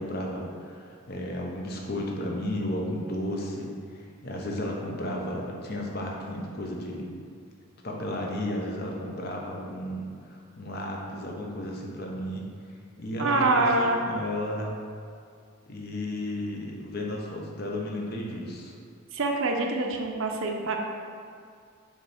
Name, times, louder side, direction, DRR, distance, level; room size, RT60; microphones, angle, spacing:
voice 1, 0.0-7.1 7.8-12.4 13.0-14.7 15.7-18.7, left 1 dB, 45° left, -1 dB, 0.8 m, -33 dB
voice 2, 13.2-14.0 19.1-20.8, right 2 dB, 65° right, 2 dB, 0.7 m, -25 dB
4.9 x 4.0 x 5.6 m, 2.3 s
head